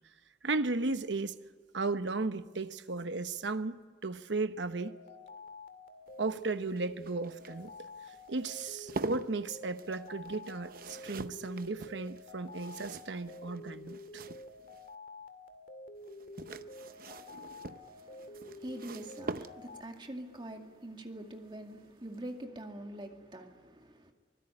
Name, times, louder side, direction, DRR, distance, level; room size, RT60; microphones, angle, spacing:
voice 1, 0.4-1.4 1.7-5.0 6.2-7.7 8.3-14.2, right 3 dB, 80° right, 1.0 m, -35 dB
sound 1, 4.7-19.8, left 2 dB, 50° left, 2.0 m, -49 dB
sound 2, 6.1-14.9 16.0-20.0 21.6-21.9 22.2-22.3, right 3 dB, 50° right, 0.8 m, -45 dB
voice 2, 16.5-24.1, right 1 dB, 25° right, 2.3 m, -46 dB
24.5 x 21.5 x 9.9 m
head